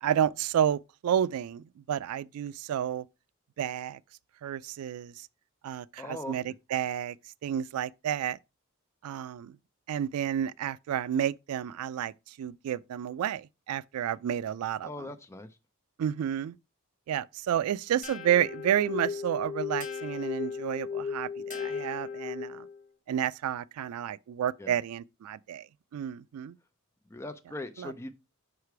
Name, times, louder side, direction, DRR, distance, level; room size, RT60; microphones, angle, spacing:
voice 1, 0.0-3.1 3.6-4.0 4.4-5.3 5.6-7.2 7.4-8.4 9.0-9.6 9.9-14.9 16.0-16.6 17.1-22.7 23.1-25.7 25.9-26.5 27.8-27.9, right 10 dB, 90° right, 0.3 m, -30 dB
voice 2, 6.0-6.4 14.8-15.5 24.6-24.7 27.1-28.1, left 2 dB, 10° left, 0.4 m, -40 dB
sound 1, 18.0-22.8, left 6 dB, 35° left, 1.2 m, -36 dB
5.7 x 4.9 x 4.6 m
head